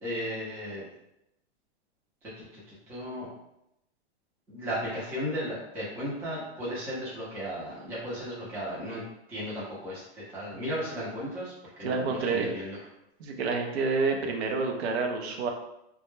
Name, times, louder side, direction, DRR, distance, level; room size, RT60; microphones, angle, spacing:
voice 1, 0.0-0.8 2.5-2.6 2.9-3.3 4.5-9.0 9.3-11.5 11.8-12.8, equal, 5° right, -8 dB, 0.4 m, -35 dB
voice 2, 11.8-12.7 13.2-15.5, right 4 dB, 70° right, 3 dB, 0.6 m, -29 dB
2.2 x 2.0 x 3.0 m, 0.83 s
supercardioid pair, 155°, 33 cm